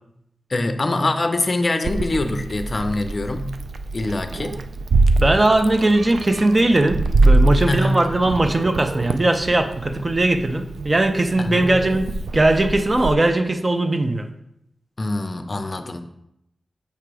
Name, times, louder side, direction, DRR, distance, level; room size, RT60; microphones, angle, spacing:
voice 1, 0.5-3.5 3.9-4.6 7.7-8.0 11.4-11.7 15.0-16.0, left 2 dB, 40° left, 7 dB, 0.5 m, -24 dB
Meow, 1.8-13.1, right 2 dB, 80° right, 0.3 m, -23 dB
voice 2, 5.2-14.3, right 2 dB, 30° right, 7 dB, 0.5 m, -19 dB
6.8 x 2.9 x 4.7 m, 0.78 s
wide cardioid pair, 100°, 0 cm